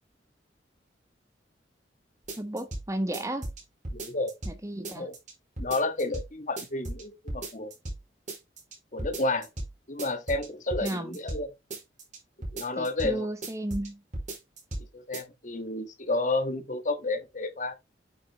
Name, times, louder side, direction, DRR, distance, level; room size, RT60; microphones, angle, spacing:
sound 1, 2.3-2.8 3.1-4.6 4.8-5.3 5.6-6.3 6.6-7.0 7.3-8.0 8.3-8.7 9.0-9.7 10.0-11.4 11.7-12.2 12.4-13.1 13.4-13.9 14.1-14.9 15.1-15.2, right 1 dB, 45° right, 4.6 m, -36 dB
voice 1, 2.4-3.5 4.4-5.1 10.8-11.2 12.8-14.0, right 1 dB, 15° right, 1.0 m, -33 dB
voice 2, 3.9-4.3 4.9-5.1 5.6-7.7 8.9-9.5 9.9-11.5 12.5-13.3 14.9-17.8, left 2 dB, 45° left, 1.4 m, -31 dB
9.0 x 6.6 x 2.9 m
head